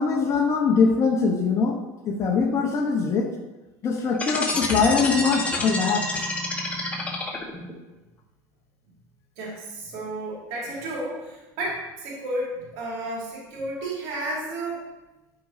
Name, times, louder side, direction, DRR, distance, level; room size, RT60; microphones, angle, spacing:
voice 1, 0.0-1.8 2.0-3.3 3.8-6.1, left 5 dB, 35° left, -1 dB, 1.0 m, -22 dB
sound 1, 4.1-7.7, left 2 dB, 15° left, 1.3 m, -28 dB
voice 2, 9.4-14.9, right 1 dB, 75° right, -4 dB, 2.3 m, -32 dB
10.0 x 5.1 x 2.7 m, 1.1 s
supercardioid pair, 115°, 9 cm